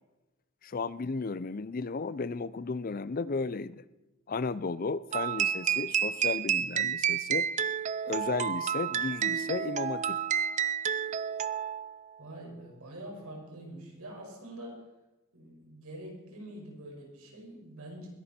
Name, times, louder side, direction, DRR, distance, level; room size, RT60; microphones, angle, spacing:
voice 1, 0.6-3.8 4.3-7.5 8.0-10.2, left 4 dB, 40° left, 17 dB, 0.5 m, -34 dB
sound 1, 5.1-11.9, right 8 dB, 30° right, 0.4 m, -30 dB
voice 2, 12.2-14.8 15.3-18.1, right 1 dB, 85° right, 0 dB, 5.5 m, -45 dB
21.0 x 11.0 x 4.4 m, 1.0 s
head